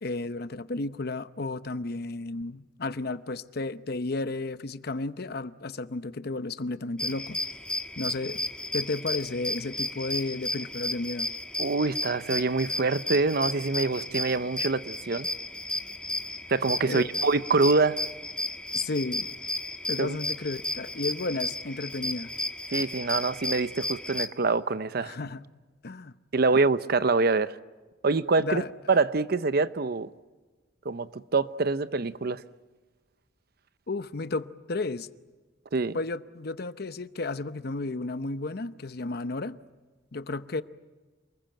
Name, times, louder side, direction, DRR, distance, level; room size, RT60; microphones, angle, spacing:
voice 1, 0.0-7.4 8.0-8.4 8.7-11.3 16.9-17.1 18.7-19.3 19.9-22.3 25.0-25.4 25.8-26.1 28.4-28.7 33.9-35.1 35.9-39.6 40.1-40.6, left 3 dB, 60° left, 0.8 m, -33 dB
sound 1, 7.0-24.3, left 1 dB, 5° left, 1.3 m, -33 dB
voice 2, 11.6-15.3 16.5-18.0 20.0-20.2 22.7-25.1 26.3-27.5 28.0-28.6 28.9-30.1 30.8-32.4 35.7-36.0, right 3 dB, 60° right, 0.8 m, -25 dB
28.5 x 21.0 x 9.1 m
head